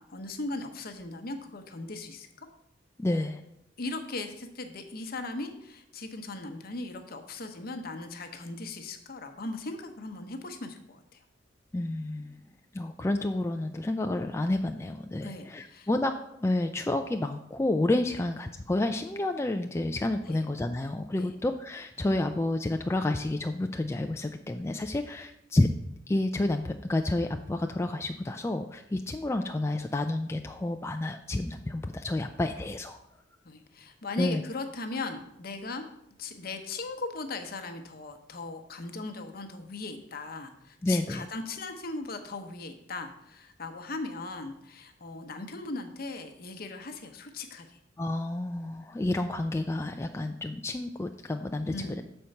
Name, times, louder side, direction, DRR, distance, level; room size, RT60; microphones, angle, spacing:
voice 1, 0.0-2.5 3.8-11.2 15.2-15.9 18.1-18.2 20.3-20.4 21.2-21.3 33.4-35.8 36.2-47.8 51.7-52.0, left 3 dB, 55° left, 6 dB, 0.9 m, -38 dB
voice 2, 3.0-3.4 11.7-12.4 12.7-16.1 16.4-25.7 26.1-33.0 34.2-34.4 40.8-41.3 48.0-52.0, left 2 dB, 15° left, 5 dB, 0.3 m, -30 dB
6.9 x 4.4 x 6.4 m, 0.78 s
head